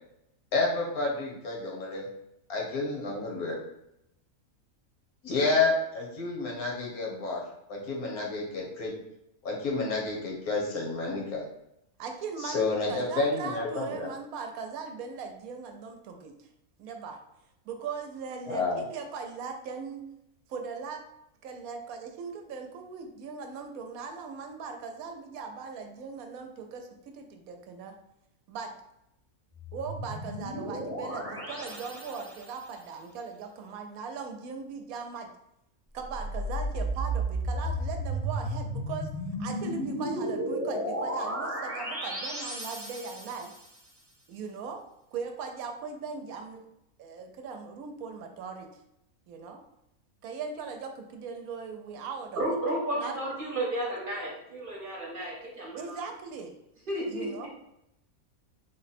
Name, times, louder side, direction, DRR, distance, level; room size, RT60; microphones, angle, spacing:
voice 1, 0.5-2.1 2.5-3.6 5.2-7.4 7.7-8.9 9.4-11.4 12.4-14.1 18.5-18.8, left 3 dB, 80° left, -1 dB, 1.4 m, -30 dB
voice 2, 12.0-16.5 16.8-17.2 17.6-20.1 20.5-21.0 21.4-28.0 28.5-28.8 29.7-35.3 35.9-39.1 39.4-43.5 44.3-44.8 45.1-46.7 47.0-48.7 49.3-49.6 50.2-52.4 53.0-53.2 55.7-56.5 57.1-57.5, right 5 dB, 75° right, 4 dB, 1.0 m, -39 dB
sound 1, 29.5-32.7 36.0-43.7, right 1 dB, 10° right, 0.8 m, -33 dB
voice 3, 52.4-56.0 56.9-57.5, right 1 dB, 40° right, -3 dB, 1.0 m, -32 dB
3.7 x 2.1 x 4.0 m, 0.83 s
omnidirectional pair, 1.5 m